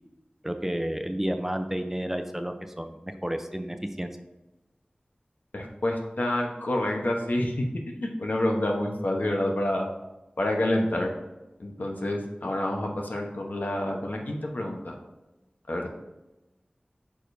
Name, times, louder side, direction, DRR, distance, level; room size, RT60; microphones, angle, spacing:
voice 1, 0.4-4.1, equal, 10° right, 6 dB, 0.6 m, -31 dB
voice 2, 5.5-7.7 8.0-9.9 10.4-11.1 11.6-14.9 15.7-15.9, left 1 dB, 75° left, 1 dB, 1.1 m, -28 dB
8.9 x 5.0 x 2.7 m, 1.0 s
wide cardioid pair, 45°, 3 cm